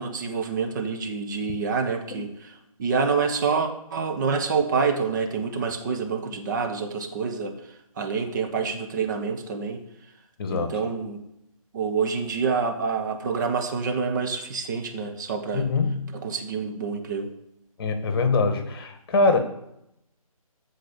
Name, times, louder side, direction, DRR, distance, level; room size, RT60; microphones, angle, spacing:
voice 1, 0.0-2.5 2.8-9.8 10.5-11.2 11.7-15.7 16.1-17.3, right 5 dB, 30° right, 5 dB, 1.4 m, -27 dB
voice 2, 10.4-10.7 15.5-16.1 17.8-19.4, left 3 dB, 40° left, 7 dB, 1.8 m, -23 dB
14.0 x 4.9 x 7.1 m, 0.81 s
figure-of-eight pair, 150°, 19 cm